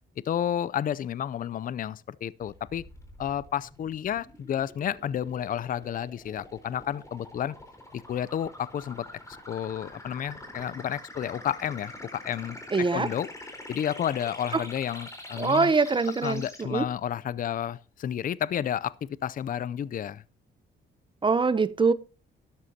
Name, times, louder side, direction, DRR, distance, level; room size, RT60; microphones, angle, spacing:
voice 1, 0.2-2.8 3.2-7.6 7.9-13.3 13.7-15.7 16.2-20.2, left 10 dB, 45° left, 0.5 m, -31 dB
sound 1, 2.4-16.6, left 1 dB, 15° left, 4.2 m, -45 dB
voice 2, 12.7-13.1 14.5-14.6 15.4-16.4 16.7-16.8 21.2-21.9, right 4 dB, 25° right, 0.7 m, -23 dB
13.0 x 11.5 x 2.8 m
cardioid pair, 90°, 20 cm